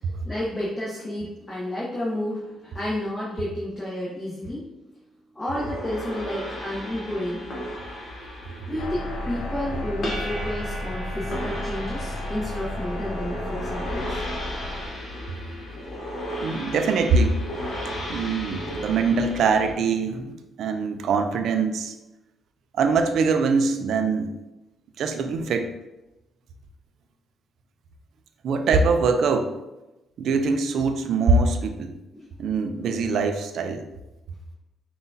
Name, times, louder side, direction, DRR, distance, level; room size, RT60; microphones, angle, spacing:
voice 1, 0.2-4.6 5.3-7.5 8.7-14.2 32.2-32.3, left 1 dB, 20° left, -6 dB, 1.0 m, -31 dB
sound 1, 5.5-19.7, equal, 50° left, 1.1 m, -35 dB
sound 2, 8.8-14.9, left 1 dB, 85° left, 0.7 m, -33 dB
voice 2, 13.5-14.0 16.4-17.4 18.1-22.0 22.7-24.3 25.0-25.7 28.4-29.5 30.2-31.9 32.4-33.8, right 4 dB, 70° right, 7 dB, 0.4 m, -23 dB
5.5 x 2.3 x 2.7 m, 0.99 s
cardioid pair, 90°, 0 cm